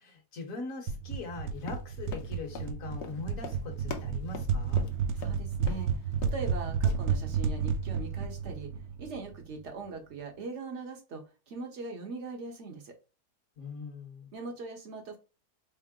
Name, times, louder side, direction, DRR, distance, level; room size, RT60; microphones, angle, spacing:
voice 1, 0.0-4.9 13.6-14.3, left 3 dB, 55° left, 2 dB, 1.6 m, -41 dB
sound 1, 0.9-9.5, right 6 dB, 90° right, 1.2 m, -32 dB
Run, 1.6-5.4 5.7-5.9 6.1-6.5 6.9-7.0, left 7 dB, 85° left, 1.3 m, -43 dB
voice 2, 5.1-8.7 9.0-13.0 14.3-15.2, right 3 dB, 50° right, 3 dB, 1.2 m, -41 dB
4.6 x 2.0 x 3.6 m, 0.33 s
omnidirectional pair, 1.7 m